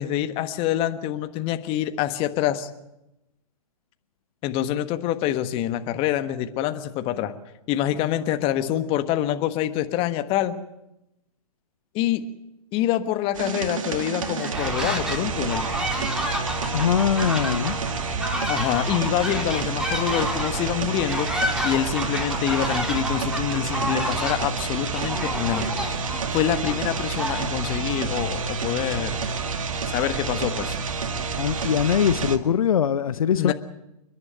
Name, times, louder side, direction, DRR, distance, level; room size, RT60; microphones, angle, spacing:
voice 1, 0.0-2.7 4.4-7.3 7.7-10.5 11.9-12.2 12.7-15.7 18.5-25.8 26.3-29.2 29.9-30.8 33.4-33.5, left 12 dB, 30° left, 9 dB, 1.4 m, -26 dB
sound 1, 13.3-32.4, right 5 dB, 60° right, 2.0 m, -29 dB
sound 2, 14.2-15.2 15.5-27.8, equal, 5° right, 3.4 m, -30 dB
voice 2, 16.7-17.8 31.4-33.5, left 8 dB, 65° left, 13 dB, 0.8 m, -22 dB
29.5 x 11.0 x 9.0 m, 0.91 s
figure-of-eight pair, 120°, 20 cm